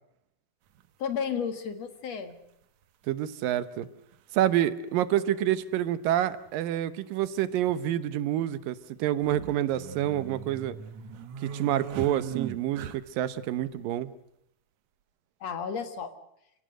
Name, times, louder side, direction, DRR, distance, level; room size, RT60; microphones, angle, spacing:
sound 1, 0.7-0.9 2.3-2.4 3.8-3.9 4.1-4.2 6.1-6.2 6.5-6.6 7.2-7.7 9.1-13.3, right 8 dB, 65° right, 2.1 m, -39 dB
voice 1, 1.0-2.4 15.4-16.1, left 6 dB, 55° left, 9 dB, 2.5 m, -32 dB
voice 2, 3.1-3.9 4.3-10.8 11.4-14.1, right 12 dB, 85° right, 14 dB, 2.7 m, -28 dB
28.5 x 16.5 x 7.8 m, 0.78 s
omnidirectional pair, 3.9 m